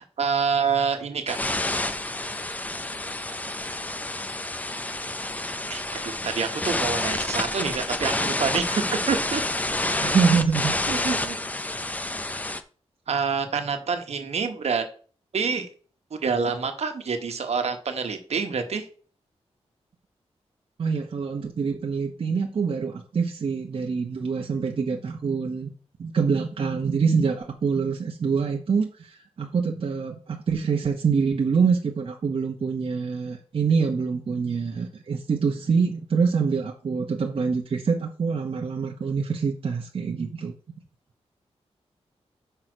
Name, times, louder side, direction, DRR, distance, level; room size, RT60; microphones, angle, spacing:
voice 1, 0.0-1.4 5.7-9.4 10.9-11.4 13.1-14.8 15.3-15.7 16.1-18.9, right 5 dB, 70° right, 6 dB, 1.2 m, -27 dB
sound 1, 1.3-12.6, left 2 dB, 15° left, 0.5 m, -29 dB
voice 2, 10.0-10.7 20.8-25.7 26.0-40.5, right 5 dB, 55° right, 1 dB, 0.9 m, -25 dB
6.2 x 5.7 x 5.0 m, 0.42 s
wide cardioid pair, 150°, 11 cm